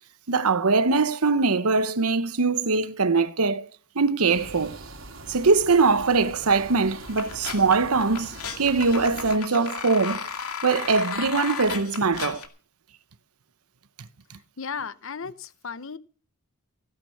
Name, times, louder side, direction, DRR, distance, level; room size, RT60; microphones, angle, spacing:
voice 1, 0.3-3.7 3.9-4.8 5.3-10.2 10.6-12.4, right 4 dB, 85° right, 1.0 m, -22 dB
sound 1, 4.3-9.4, right 2 dB, 65° right, 3.2 m, -43 dB
sound 2, 7.0-12.5, left 6 dB, 90° left, 2.4 m, -35 dB
voice 2, 14.6-16.0, left 6 dB, 60° left, 0.9 m, -35 dB
17.0 x 9.7 x 5.8 m
head